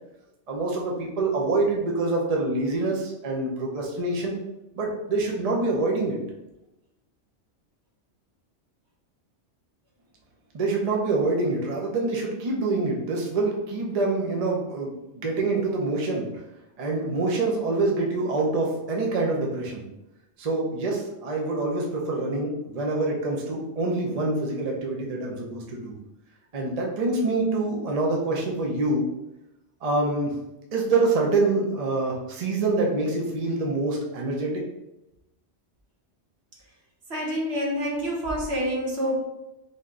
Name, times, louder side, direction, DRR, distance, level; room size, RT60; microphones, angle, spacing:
voice 1, 0.5-4.4 4.7-6.2 10.5-16.3 16.8-19.8 20.4-25.9 26.5-29.1 29.8-30.4 30.7-34.6, right 2 dB, 40° right, -1 dB, 0.7 m, -26 dB
voice 2, 37.1-39.1, equal, 70° right, -1 dB, 1.2 m, -27 dB
3.7 x 2.8 x 3.6 m, 0.92 s
omnidirectional pair, 1.2 m